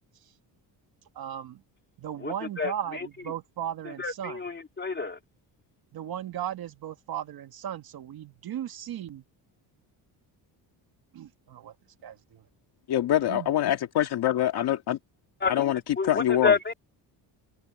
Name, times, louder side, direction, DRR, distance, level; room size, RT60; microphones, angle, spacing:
voice 1, 1.1-1.6 2.0-4.4 5.9-9.2 11.1-11.7 12.0-12.4 13.2-13.5, right 10 dB, 55° right, 1.6 m, -36 dB
voice 2, 2.2-3.1 4.0-5.2 15.4-16.7, left 5 dB, 25° left, 3.0 m, -29 dB
voice 3, 12.9-15.0 15.5-16.5, left 12 dB, 65° left, 2.0 m, -25 dB
cardioid pair, 145°, 42 cm